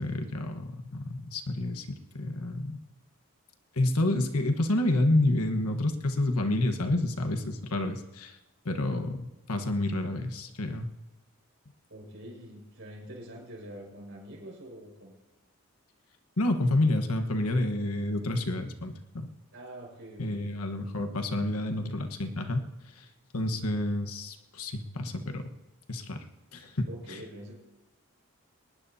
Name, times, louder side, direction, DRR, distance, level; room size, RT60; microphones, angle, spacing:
voice 1, 0.0-2.8 3.8-8.4 8.6-10.9 16.4-19.3 20.2-22.7 23.0-23.1 23.3-25.6 25.9-26.2 26.5-27.2, left 1 dB, 85° left, 6 dB, 1.4 m, -29 dB
voice 2, 11.9-15.1 19.5-20.6 26.9-27.5, right 1 dB, 60° right, -3 dB, 6.1 m, -45 dB
22.0 x 19.0 x 2.8 m, 1.1 s
head